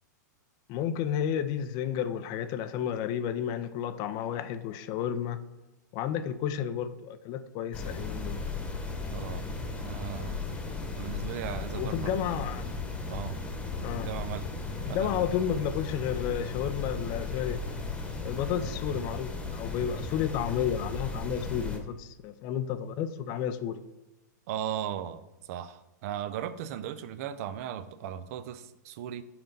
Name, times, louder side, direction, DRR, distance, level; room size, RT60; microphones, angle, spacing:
voice 1, 0.7-5.4 5.9-8.4 11.7-12.6 13.8-14.1 14.9-17.6 18.2-23.8, left 9 dB, 40° left, 12 dB, 0.5 m, -32 dB
sound 1, 7.7-21.8, left 3 dB, 10° left, 1.1 m, -36 dB
voice 2, 9.1-9.5 9.8-10.4 10.9-12.1 13.1-13.4 13.9-14.5 14.9-15.3 24.5-29.2, right 10 dB, 50° right, 13 dB, 0.5 m, -37 dB
5.8 x 3.9 x 5.2 m, 0.97 s
hypercardioid pair, 120°, 10 cm